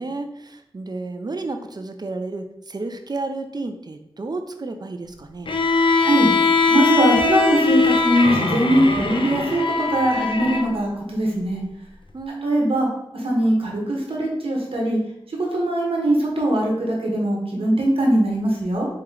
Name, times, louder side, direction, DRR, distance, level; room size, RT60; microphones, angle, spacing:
voice 1, 0.0-5.5 12.1-12.8, right 3 dB, 45° right, 7 dB, 0.5 m, -31 dB
Bowed string instrument, 5.5-10.7, left 4 dB, 60° left, 0.5 m, -20 dB
voice 2, 6.0-6.3 6.7-11.6 12.4-12.9 13.2-15.0 15.4-18.9, right 1 dB, 75° right, -1 dB, 1.2 m, -21 dB
4.4 x 3.0 x 3.8 m, 0.82 s
wide cardioid pair, 55°, 10 cm